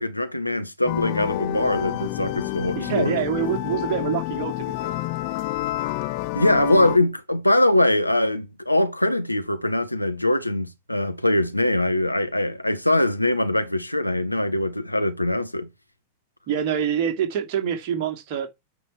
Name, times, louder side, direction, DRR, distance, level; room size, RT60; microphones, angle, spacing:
voice 1, 0.0-3.2 6.3-15.7, left 1 dB, 85° left, 1.0 m, -22 dB
sound 1, 0.9-7.0, left 18 dB, 45° left, 0.7 m, -29 dB
voice 2, 2.7-5.0 16.5-18.5, right 8 dB, 45° right, 2.4 m, -26 dB
9.3 x 5.3 x 4.5 m
figure-of-eight pair, 90°, 0 cm